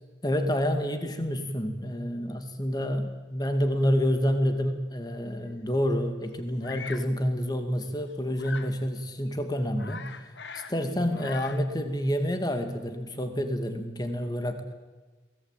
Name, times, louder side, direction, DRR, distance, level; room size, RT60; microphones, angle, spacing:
voice 1, 0.2-10.0 10.5-14.7, equal, 20° left, 7 dB, 2.3 m, -28 dB
Bird vocalization bird call bird song, 6.6-7.1 8.4-8.8 9.3-9.4 9.6-10.8 11.0-11.7, left 5 dB, 70° left, 1.5 m, -41 dB
23.0 x 18.5 x 9.1 m, 1.2 s
head